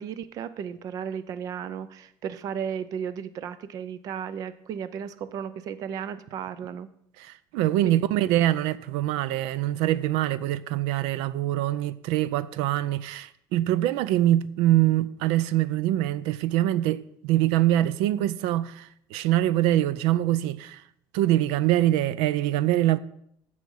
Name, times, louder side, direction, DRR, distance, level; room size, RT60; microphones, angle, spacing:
voice 1, 0.0-6.9 7.8-8.0, right 8 dB, 40° right, 0.5 m, -34 dB
voice 2, 7.2-20.8 21.1-23.0, right 14 dB, 85° right, 0.5 m, -24 dB
15.0 x 6.3 x 5.4 m
cardioid pair, 180°, 9 cm